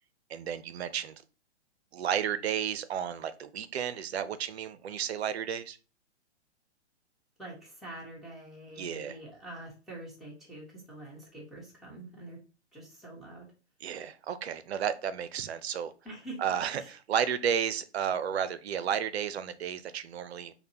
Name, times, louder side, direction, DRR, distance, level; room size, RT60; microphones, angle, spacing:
voice 1, 0.3-1.2 1.9-5.8 8.8-9.2 13.8-15.9 16.4-20.5, right 8 dB, 65° right, 14 dB, 0.5 m, -32 dB
voice 2, 7.4-12.4 12.7-13.5 16.0-16.4 16.8-16.9, right 1 dB, ahead, -5 dB, 1.2 m, -45 dB
5.1 x 2.2 x 2.8 m, 0.34 s
figure-of-eight pair, 120°, 34 cm